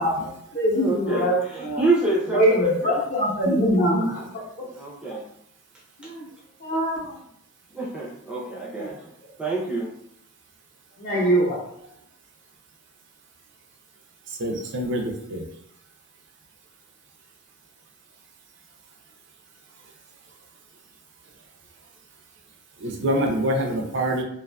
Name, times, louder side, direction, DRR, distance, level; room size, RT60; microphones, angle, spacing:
voice 1, 0.0-1.4 1.6-1.8 2.3-4.2 6.0-6.3 6.6-7.2 8.8-8.9 11.0-11.6, equal, 45° left, -4 dB, 0.8 m, -23 dB
voice 2, 0.7-3.0 4.6-5.2 6.0-6.1 7.7-9.0 9.4-9.9, right 3 dB, 5° right, -6 dB, 0.5 m, -27 dB
voice 3, 14.3-15.4 22.8-24.2, right 1 dB, 60° right, 2 dB, 0.4 m, -25 dB
2.5 x 2.4 x 2.2 m, 0.73 s
head